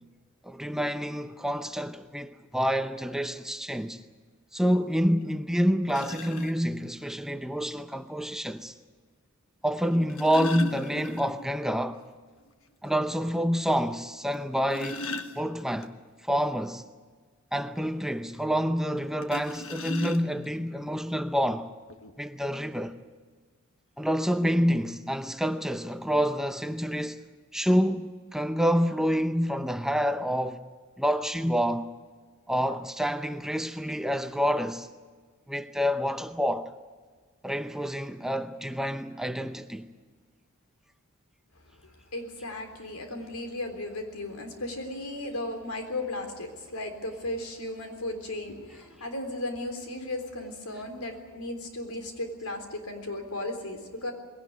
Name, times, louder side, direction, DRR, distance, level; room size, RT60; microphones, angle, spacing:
voice 1, 0.4-4.0 4.5-8.7 9.6-12.0 12.8-15.0 15.3-15.9 16.2-16.8 17.5-21.7 22.2-23.0 24.0-27.2 27.5-30.6 31.0-31.9 32.5-34.9 35.5-36.7 37.4-39.9, equal, ahead, 0.7 m, -28 dB
sound 1, 5.2-5.3 5.9-6.5 7.9-8.0 9.8-11.6 11.9-12.0 12.4-12.5 13.0-13.1 14.3-15.9 19.2-20.6 21.4-21.5 21.9-22.1, left 2 dB, 65° left, 1.4 m, -37 dB
voice 2, 41.7-54.1, left 1 dB, 90° left, 3.8 m, -36 dB
21.0 x 17.5 x 9.6 m
head